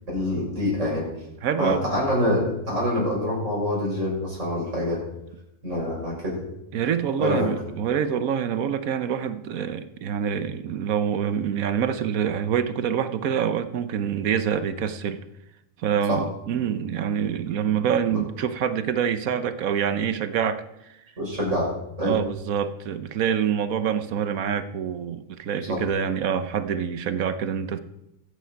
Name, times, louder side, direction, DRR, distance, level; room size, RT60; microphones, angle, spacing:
voice 1, 0.1-1.1 1.6-5.0 5.6-6.4 7.2-7.5 16.1-16.2 18.1-18.2 21.2-21.7 22.0-22.2 25.7-25.8, left 1 dB, 60° right, 6.8 m, -25 dB
voice 2, 1.4-1.9 6.7-15.2 15.8-21.0 22.0-27.8, right 8 dB, 80° right, 1.2 m, -26 dB
23.5 x 8.3 x 4.7 m
omnidirectional pair, 1.4 m